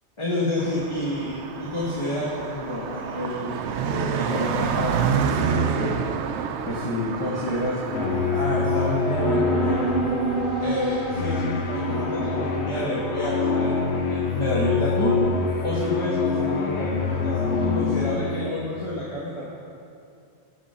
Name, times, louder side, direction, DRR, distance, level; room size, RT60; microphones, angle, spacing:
voice 1, 0.2-3.5 3.8-5.9 6.7-9.8 10.6-15.2 15.6-19.4, left 1 dB, 30° left, -6 dB, 1.4 m, -29 dB
Car passing by, 0.6-9.2, right 7 dB, 90° right, 0.9 m, -28 dB
sound 1, 7.3-8.4 9.0-13.7, right 2 dB, ahead, 3.1 m, -30 dB
sound 2, 7.9-18.5, left 4 dB, 80° left, 1.2 m, -25 dB
13.0 x 6.5 x 5.6 m, 2.4 s
omnidirectional pair, 1.1 m